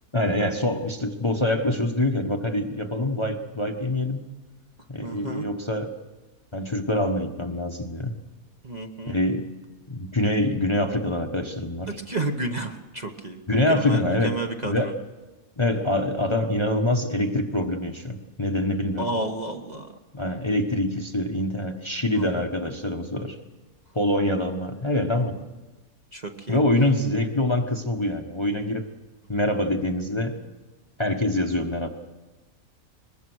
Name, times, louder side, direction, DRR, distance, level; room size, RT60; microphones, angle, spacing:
voice 1, 0.1-4.3 4.9-5.9 6.5-8.1 9.1-9.4 9.9-11.9 13.5-14.4 14.6-14.9 15.6-19.1 20.1-23.4 23.9-25.4 26.5-28.9 29.3-30.4 31.0-31.9, left 1 dB, 20° left, 3 dB, 1.2 m, -25 dB
voice 2, 5.0-5.5 8.6-9.2 11.9-14.9 19.0-19.9 22.1-22.3 25.1-25.5 26.1-26.6, right 2 dB, 30° right, 3 dB, 1.2 m, -32 dB
22.5 x 21.5 x 6.3 m, 1.2 s
omnidirectional pair, 1.5 m